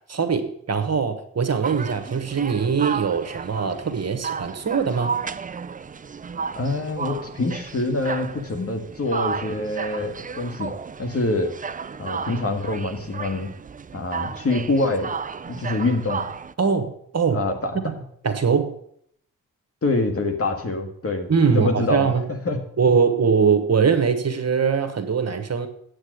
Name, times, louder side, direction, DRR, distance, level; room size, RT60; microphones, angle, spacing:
voice 1, 0.1-5.2 16.6-17.4 17.8-17.9 18.2-18.7 21.3-22.3 22.8-25.7, right 6 dB, 45° right, 7 dB, 1.3 m, -22 dB
sound 1, 1.6-16.5, right 6 dB, 25° right, 0.4 m, -33 dB
voice 2, 6.6-10.7 11.0-11.5 12.0-13.5 13.9-15.1 15.5-16.2 17.3-17.8 19.8-22.1 22.5-22.6, left 2 dB, 40° left, 5 dB, 1.7 m, -25 dB
8.6 x 6.5 x 6.4 m, 0.68 s
cardioid pair, 60°, 35 cm